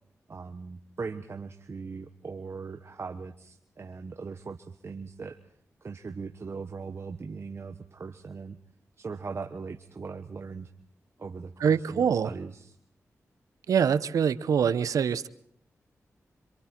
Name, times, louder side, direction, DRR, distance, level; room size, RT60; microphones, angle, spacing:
voice 1, 0.3-5.4 5.8-8.6 9.0-10.7 11.2-12.7, right 4 dB, 50° right, 7 dB, 1.2 m, -39 dB
voice 2, 11.6-12.3 13.7-15.3, right 7 dB, 90° right, 15 dB, 0.9 m, -24 dB
26.5 x 26.0 x 4.5 m, 0.66 s
cardioid pair, 65°, 6 cm